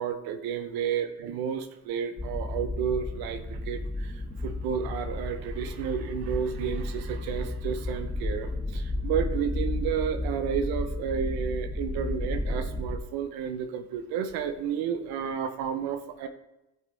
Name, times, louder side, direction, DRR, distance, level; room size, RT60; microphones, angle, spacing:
voice 1, 0.0-4.1 4.4-16.3, right 8 dB, 90° right, 7 dB, 1.0 m, -31 dB
sound 1, 2.2-13.0, left 1 dB, 15° left, 1.1 m, -33 dB
15.0 x 5.4 x 4.1 m, 0.97 s
supercardioid pair, 70°, 36 cm